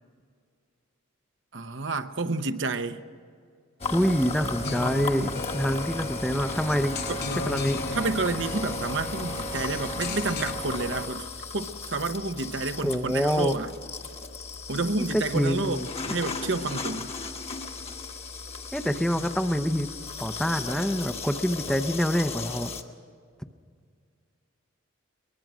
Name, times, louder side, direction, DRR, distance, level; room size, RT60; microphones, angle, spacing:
voice 1, 1.5-3.0 7.1-7.2 7.9-11.3 11.5-13.7 14.7-17.1 19.2-19.3, right 3 dB, 60° right, 0.9 m, -30 dB
sound 1, 3.8-22.8, left 3 dB, 30° left, 1.2 m, -35 dB
voice 2, 3.9-7.0 7.5-7.8 12.8-13.6 15.0-15.9 18.7-19.9 20.2-22.7, equal, 5° left, 0.6 m, -26 dB
sound 2, 4.6-10.5, left 4 dB, 50° left, 0.8 m, -36 dB
23.0 x 20.5 x 6.2 m
head